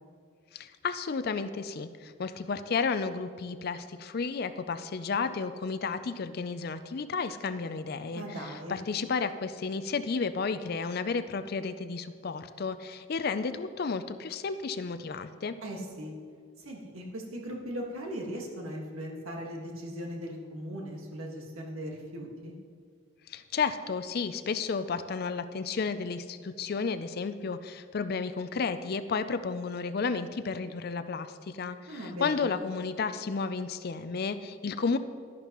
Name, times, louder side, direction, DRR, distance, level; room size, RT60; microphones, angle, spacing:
voice 1, 0.5-15.6 23.3-35.0, left 5 dB, 50° left, 12 dB, 0.4 m, -32 dB
voice 2, 8.1-8.8 15.6-16.1 16.6-22.5 31.9-32.6, equal, 85° right, -1 dB, 1.7 m, -39 dB
11.5 x 11.0 x 3.0 m, 2.1 s
head